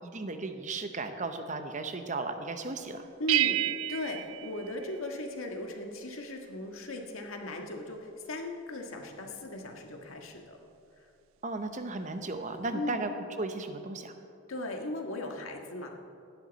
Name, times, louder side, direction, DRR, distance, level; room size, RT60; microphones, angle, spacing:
voice 1, 0.0-3.1 11.4-13.1 13.4-14.1, right 3 dB, 35° right, 7 dB, 0.8 m, -35 dB
voice 2, 3.2-10.6 11.0-11.1 12.7-13.0 14.5-15.9, left 1 dB, 80° left, 2 dB, 1.6 m, -37 dB
sound 1, 3.3-5.5, right 13 dB, 70° right, 0.3 m, -31 dB
17.0 x 11.5 x 4.1 m, 2.5 s
head